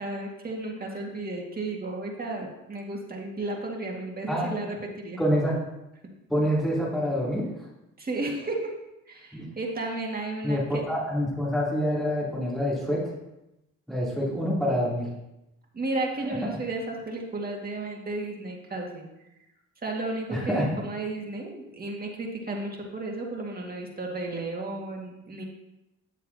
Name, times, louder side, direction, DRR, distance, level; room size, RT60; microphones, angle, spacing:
voice 1, 0.0-5.2 8.0-8.7 9.1-10.8 15.7-19.1 19.8-25.4, right 2 dB, 30° right, -1 dB, 2.0 m, -33 dB
voice 2, 5.2-5.6 6.3-7.5 9.3-9.5 10.4-13.0 13.9-15.1 16.2-16.4 20.3-20.7, equal, ahead, -7 dB, 3.2 m, -26 dB
10.0 x 7.2 x 2.8 m, 0.92 s
cardioid pair, 90°, 30 cm